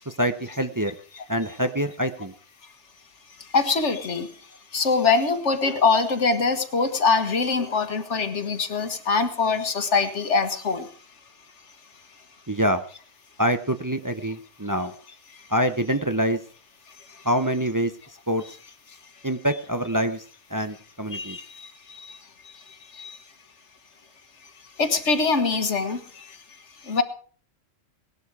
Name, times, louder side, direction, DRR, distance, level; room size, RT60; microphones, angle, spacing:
voice 1, 0.1-0.9 1.3-2.3 12.5-12.8 13.4-14.9 15.5-16.4 17.2-17.9 18.3-18.4 19.2-20.2 20.5-21.4, equal, 20° right, 8 dB, 0.7 m, -25 dB
voice 2, 3.4-4.3 4.7-10.9 17.1-17.2 21.1-23.2 24.8-26.4 26.8-27.0, left 4 dB, 85° left, 8 dB, 1.9 m, -24 dB
19.0 x 11.5 x 4.8 m, 0.43 s
omnidirectional pair, 1.2 m